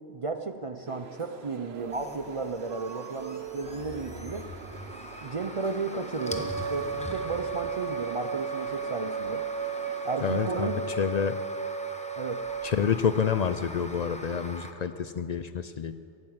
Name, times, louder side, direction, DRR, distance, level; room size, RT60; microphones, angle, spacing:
voice 1, 0.1-4.5 5.2-9.4 10.0-10.9 12.2-12.5, right 4 dB, 45° right, 8 dB, 0.5 m, -34 dB
sound 1, 0.9-10.4, right 6 dB, 75° right, 1.0 m, -45 dB
sound 2, 1.8-14.7, left 1 dB, 5° left, 0.8 m, -43 dB
Wind instrument woodwind instrument, 6.2-12.7, right 6 dB, 25° right, 1.9 m, -34 dB
voice 2, 10.2-11.4 12.6-15.9, left 7 dB, 55° left, 11 dB, 0.5 m, -28 dB
17.0 x 8.7 x 7.9 m, 2.6 s
omnidirectional pair, 1.1 m